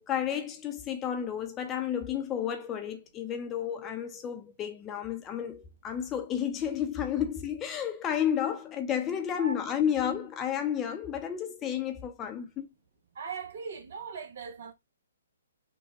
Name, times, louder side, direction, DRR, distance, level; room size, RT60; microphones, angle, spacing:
voice 1, 0.0-12.7, left 9 dB, 20° left, 0.7 m, -31 dB
voice 2, 13.1-14.7, right 5 dB, 55° right, 0.9 m, -39 dB
5.6 x 2.3 x 2.8 m
figure-of-eight pair, 125°, 0 cm